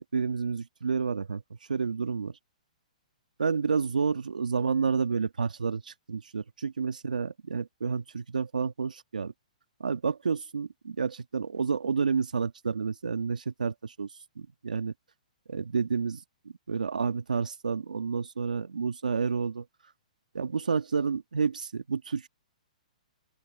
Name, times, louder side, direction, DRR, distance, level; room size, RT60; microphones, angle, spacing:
voice 1, 0.1-1.4 1.7-2.3 3.4-9.3 9.8-14.1 14.4-14.9 15.5-16.2 16.7-19.6 20.3-22.3, right 5 dB, 90° right, 2.1 m, -30 dB
open air
hypercardioid pair, 135°, 4 cm